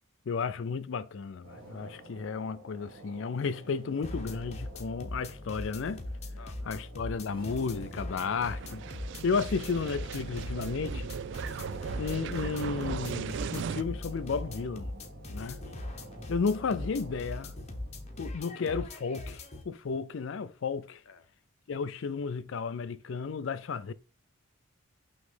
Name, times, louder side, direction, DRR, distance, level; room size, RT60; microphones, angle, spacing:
voice 1, 0.3-6.0 6.7-8.8 9.2-11.1 12.0-14.9 15.3-15.7 16.3-17.6 18.2-21.0 21.7-23.9, left 5 dB, 60° left, 0.4 m, -33 dB
sound 1, 1.4-18.8, right 2 dB, 70° right, 2.7 m, -50 dB
sound 2, 4.0-19.6, left 1 dB, 30° left, 0.8 m, -41 dB
voice 2, 6.4-6.8 15.4-16.4 21.1-21.2, left 5 dB, 90° left, 0.9 m, -54 dB
sound 3, 8.3-13.8, right 7 dB, 55° right, 0.3 m, -38 dB
6.1 x 3.1 x 5.4 m
head